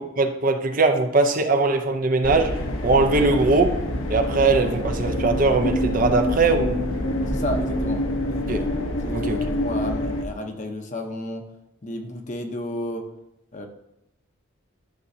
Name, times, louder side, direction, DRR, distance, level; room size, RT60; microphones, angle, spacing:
voice 1, 0.0-3.8 4.1-6.9 8.5-8.7 9.1-9.5, right 3 dB, 40° right, 5 dB, 0.6 m, -21 dB
sound 1, 2.2-10.2, left 1 dB, 70° left, 1.0 m, -26 dB
voice 2, 7.3-8.6 9.0-9.3 9.6-11.4 11.8-13.1 13.5-13.7, left 1 dB, 35° left, 4 dB, 0.8 m, -32 dB
11.5 x 6.8 x 2.7 m, 0.86 s
head